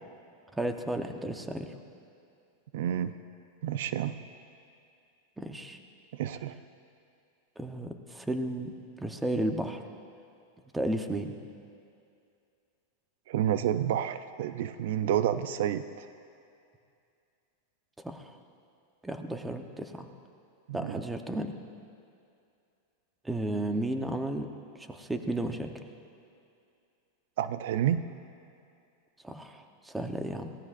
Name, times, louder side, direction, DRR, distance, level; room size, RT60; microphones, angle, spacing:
voice 1, 0.5-1.7 5.4-5.8 7.6-9.8 10.7-11.3 18.0-18.4 19.0-20.1 20.7-21.5 23.2-24.5 24.8-25.7 29.2-30.5, right 1 dB, 10° right, 6 dB, 0.9 m, -33 dB
voice 2, 2.7-3.1 3.6-4.1 6.1-6.5 13.3-16.1 20.7-21.0 27.4-28.0, right 10 dB, 70° right, 12 dB, 0.5 m, -29 dB
22.5 x 16.5 x 2.6 m, 2.5 s
hypercardioid pair, 125°, 0 cm